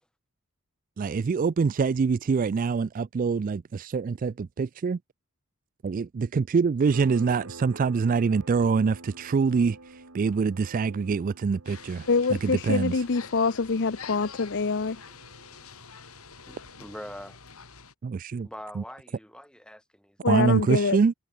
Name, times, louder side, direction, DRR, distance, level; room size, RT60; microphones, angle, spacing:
voice 1, 1.0-5.0 5.8-9.8 10.1-12.1 12.4-13.0 18.0-18.5 18.8-18.9 20.3-21.1, right 5 dB, 40° right, 0.3 m, -25 dB
sound 1, 6.9-17.2, right 2 dB, 70° right, 3.4 m, -49 dB
sound 2, 11.6-17.9, left 6 dB, 90° left, 6.8 m, -46 dB
voice 2, 12.1-15.0 20.2-21.0, left 4 dB, 55° left, 0.7 m, -25 dB
voice 3, 16.5-17.4 18.4-21.0, equal, 5° left, 5.6 m, -44 dB
head